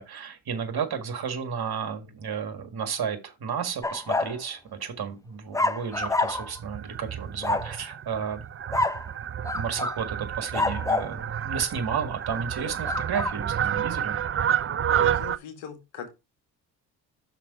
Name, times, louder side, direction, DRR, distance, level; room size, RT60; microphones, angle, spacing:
voice 1, 0.0-8.5 9.5-14.6, right 6 dB, 50° right, 1.8 m, -32 dB
sound 1, 3.8-4.4 5.5-6.6 7.4-7.7 8.7-9.1 9.4-10.0 10.5-11.1 12.8-13.4, left 2 dB, 5° left, 0.7 m, -27 dB
Fowl, 5.9-15.4, right 9 dB, 30° right, 0.5 m, -30 dB
voice 2, 14.6-16.1, left 7 dB, 70° left, 1.9 m, -41 dB
5.9 x 4.8 x 4.7 m
hypercardioid pair, 45°, 49 cm